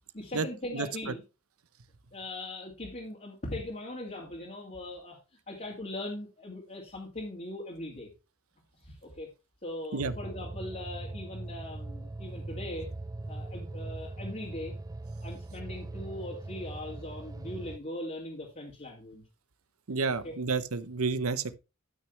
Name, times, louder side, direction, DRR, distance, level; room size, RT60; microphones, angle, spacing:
voice 1, 0.1-1.2 2.1-5.2 5.5-8.1 8.8-9.3 9.6-12.9 13.3-14.7 15.2-19.2 20.2-20.3, left 1 dB, 35° left, 2.5 m, -40 dB
sound 1, 10.0-17.8, right 2 dB, 15° right, 0.4 m, -40 dB
voice 2, 19.9-21.6, right 4 dB, 80° right, 0.9 m, -30 dB
12.5 x 6.3 x 3.3 m
head